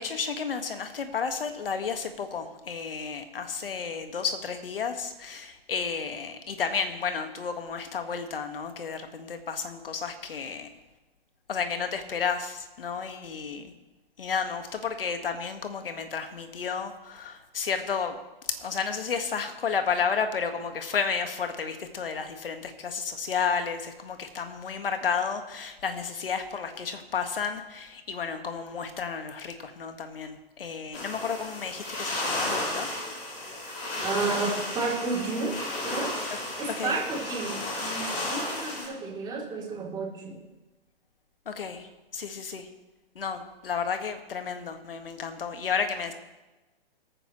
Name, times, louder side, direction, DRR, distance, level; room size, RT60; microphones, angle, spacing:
voice 1, 0.0-10.7 11.5-13.7 14.2-18.2 18.5-32.9 36.8-37.0 41.5-42.7 43.2-46.1, left 6 dB, 65° left, 7 dB, 1.9 m, -32 dB
sound 1, 30.9-38.9, left 1 dB, 25° left, 5.3 m, -33 dB
voice 2, 34.0-36.1 36.6-40.4, right 3 dB, 15° right, -4 dB, 3.3 m, -32 dB
22.5 x 9.5 x 3.2 m, 1.1 s
figure-of-eight pair, 130°, 30 cm